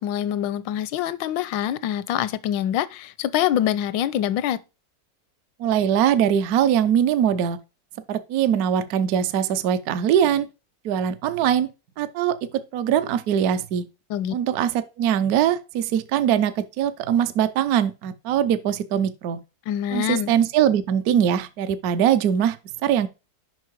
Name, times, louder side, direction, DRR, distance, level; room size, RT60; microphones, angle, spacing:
voice 1, 0.0-4.6 14.1-14.4 19.7-20.3, left 11 dB, 85° left, 1.3 m, -25 dB
voice 2, 5.6-7.6 8.1-10.5 10.8-11.7 12.0-12.4 12.7-13.8 14.3-19.4 19.9-23.1, right 9 dB, 70° right, 1.0 m, -22 dB
7.4 x 5.4 x 4.5 m
omnidirectional pair, 2.0 m